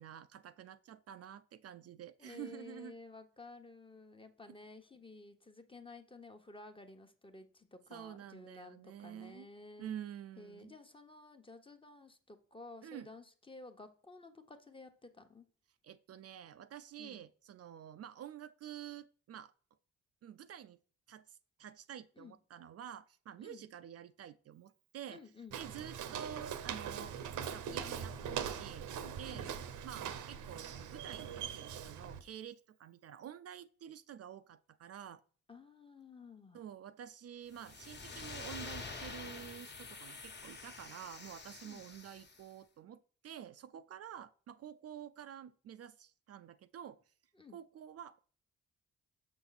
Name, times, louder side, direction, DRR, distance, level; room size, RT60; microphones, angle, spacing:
voice 1, 0.0-2.9 4.5-4.6 7.9-9.5 9.8-10.8 12.8-13.1 15.8-19.5 20.2-20.8 21.1-25.2 25.5-27.2 27.5-28.9 29.2-29.5 29.8-35.2 36.5-47.0 47.5-48.2, right 9 dB, 55° right, 12 dB, 0.5 m, -49 dB
voice 2, 2.2-9.9 10.4-15.4 17.0-17.2 22.2-22.3 23.4-23.6 25.1-25.6 29.2-29.5 35.5-36.6 41.6-41.8 47.3-47.6, left 3 dB, 15° left, 6 dB, 1.1 m, -53 dB
Walk footsteps, 25.5-32.2, right 8 dB, 80° right, 0.9 m, -42 dB
sound 1, 37.5-42.4, left 4 dB, 35° left, 1.4 m, -47 dB
6.6 x 6.0 x 4.1 m, 0.42 s
cardioid pair, 90°, 30 cm